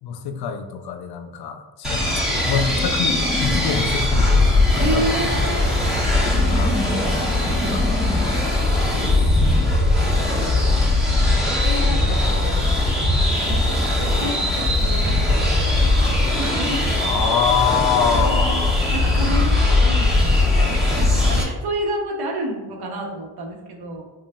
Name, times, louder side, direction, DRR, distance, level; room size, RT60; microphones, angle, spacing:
voice 1, 0.0-5.0 5.3-8.3 8.8-9.1 9.6-10.0 10.5-11.1 12.1-12.2 17.0-18.8, left 7 dB, 75° left, 8 dB, 0.5 m, -27 dB
sound 1, 1.8-21.4, left 2 dB, ahead, 1.4 m, -19 dB
voice 2, 4.8-5.9 9.0-9.1 11.6-16.0 16.4-16.8 18.1-24.0, right 1 dB, 75° right, 0 dB, 1.0 m, -30 dB
5.6 x 2.4 x 2.4 m, 1.2 s
cardioid pair, 85°, 38 cm